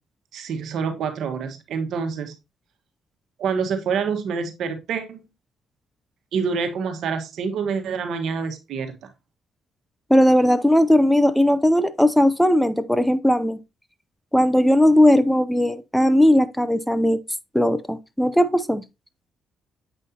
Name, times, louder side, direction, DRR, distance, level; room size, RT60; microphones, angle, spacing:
voice 1, 0.3-2.3 3.4-5.2 6.3-9.0, right 6 dB, 75° right, 1.4 m, -27 dB
voice 2, 10.1-13.6 14.3-17.2 17.5-18.8, left 1 dB, 5° left, 0.5 m, -18 dB
8.2 x 5.5 x 2.8 m
cardioid pair, 90°, 0 cm